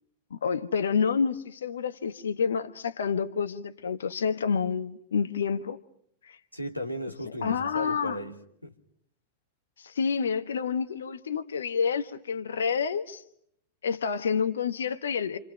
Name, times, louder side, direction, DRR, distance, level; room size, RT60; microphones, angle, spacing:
voice 1, 0.3-5.8 6.2-6.4 7.4-8.2 9.8-13.2 13.8-15.4, left 6 dB, 65° left, 1.2 m, -28 dB
voice 2, 6.5-8.7, equal, 90° left, 2.9 m, -35 dB
30.0 x 27.0 x 5.6 m
figure-of-eight pair, 90°, 0 cm